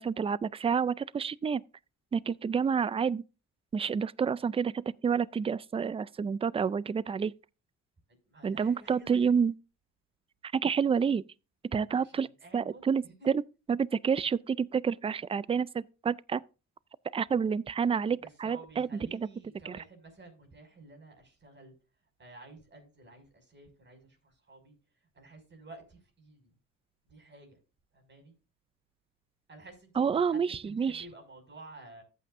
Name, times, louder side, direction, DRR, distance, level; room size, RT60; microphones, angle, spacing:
voice 1, 0.0-1.6 2.1-3.2 3.7-7.3 8.4-9.5 10.4-11.2 11.7-12.3 12.5-13.4 13.7-16.4 17.1-19.3 19.7-19.8 30.0-31.0, right 6 dB, 20° right, 0.4 m, -29 dB
voice 2, 8.3-9.4 11.9-13.3 18.4-21.7 22.2-24.8 25.1-26.6 27.1-27.6 27.9-28.3 29.5-32.0, right 2 dB, 40° right, 6.0 m, -52 dB
14.0 x 8.5 x 2.6 m
cardioid pair, 90°, 30 cm